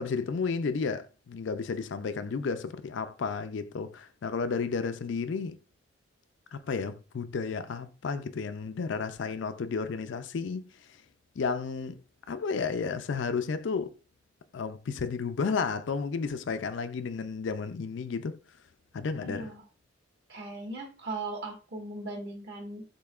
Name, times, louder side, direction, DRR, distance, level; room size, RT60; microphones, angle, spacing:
voice 1, 0.0-5.6 6.5-10.7 11.4-12.0 12.3-13.9 14.5-18.3 18.9-19.5, left 5 dB, 60° left, 0.4 m, -32 dB
voice 2, 19.2-19.6 20.3-22.8, right 2 dB, 60° right, 1.5 m, -38 dB
6.5 x 2.8 x 2.4 m
head